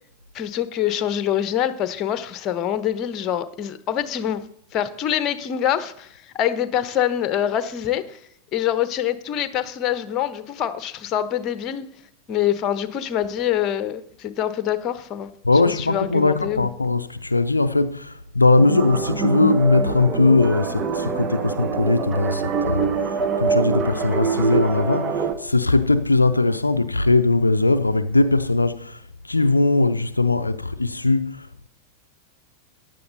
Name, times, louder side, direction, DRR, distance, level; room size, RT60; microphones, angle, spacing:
voice 1, 0.3-4.4 4.7-8.2 8.5-11.9 12.3-15.3 15.6-16.7, left 10 dB, 35° left, 1.0 m, -25 dB
voice 2, 15.4-31.7, left 3 dB, 80° left, 0.5 m, -20 dB
sound 1, 18.6-25.3, right 5 dB, 25° right, 1.3 m, -25 dB
15.0 x 10.5 x 4.0 m
figure-of-eight pair, 90°, 0 cm